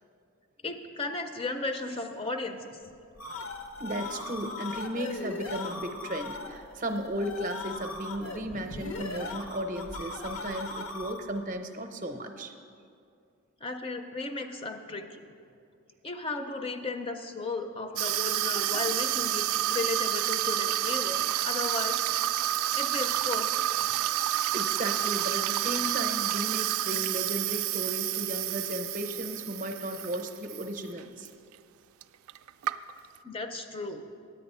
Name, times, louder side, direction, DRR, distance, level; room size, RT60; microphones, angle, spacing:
voice 1, 0.6-2.8 13.6-15.2 16.0-19.4 19.7-22.0 22.7-23.6 33.2-34.0, left 3 dB, 25° left, 6 dB, 0.5 m, -35 dB
sound 1, 2.9-11.4, left 2 dB, 75° left, 0.8 m, -39 dB
voice 2, 3.8-12.5 24.5-31.3, right 1 dB, 35° right, 6 dB, 0.6 m, -35 dB
Water tap faucet / Sink (filling or washing), 18.0-30.7 31.0-31.3 32.0-32.1 32.3-33.2, right 13 dB, 75° right, 0.3 m, -29 dB
9.5 x 8.6 x 5.5 m, 2.4 s
head